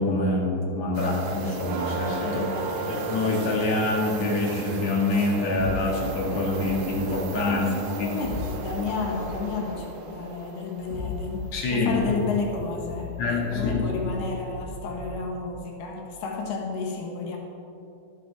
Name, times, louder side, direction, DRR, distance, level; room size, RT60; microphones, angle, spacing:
voice 1, 0.0-2.4 2.9-7.7 8.0-8.1 11.5-11.9 13.2-13.8, left 2 dB, 50° left, -3 dB, 2.9 m, -25 dB
sound 1, 0.9-11.6 13.6-13.7 14.3-14.4, right 4 dB, 80° right, 2.8 m, -35 dB
voice 2, 2.2-3.0 7.5-13.2 13.5-17.4, left 4 dB, 90° left, 0 dB, 3.1 m, -32 dB
sound 2, 5.6-7.1 8.2-9.5 10.7-11.6 11.9-14.2 14.6-15.2, left 4 dB, 75° left, 4.3 m, -36 dB
12.0 x 11.5 x 3.6 m, 2.8 s
omnidirectional pair, 4.3 m